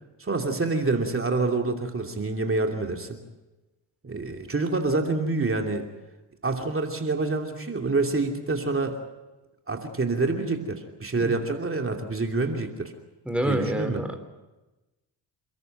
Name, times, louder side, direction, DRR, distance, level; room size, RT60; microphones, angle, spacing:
voice 1, 0.2-3.2 4.0-5.8 6.4-9.0 9.7-12.9 13.4-14.0, right 3 dB, 30° right, 3 dB, 2.9 m, -27 dB
voice 2, 13.3-14.2, equal, 5° right, 6 dB, 3.9 m, -27 dB
29.5 x 14.0 x 9.1 m, 1.1 s
supercardioid pair, 70°, 44 cm